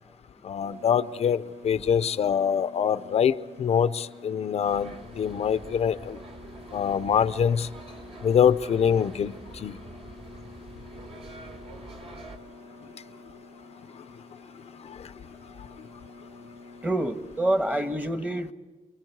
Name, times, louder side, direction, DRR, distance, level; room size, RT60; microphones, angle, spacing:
voice 1, 0.4-6.2 6.7-7.7 8.2-9.8, left 8 dB, 65° left, 13 dB, 0.6 m, -24 dB
sound 1, 0.6-18.0, left 3 dB, 90° right, 3.7 m, -49 dB
sound 2, 4.7-12.4, right 2 dB, 55° right, 3.5 m, -45 dB
voice 2, 16.8-18.5, right 1 dB, 15° right, 8 dB, 1.4 m, -27 dB
29.5 x 22.5 x 4.7 m, 1.3 s
wide cardioid pair, 135°, 12 cm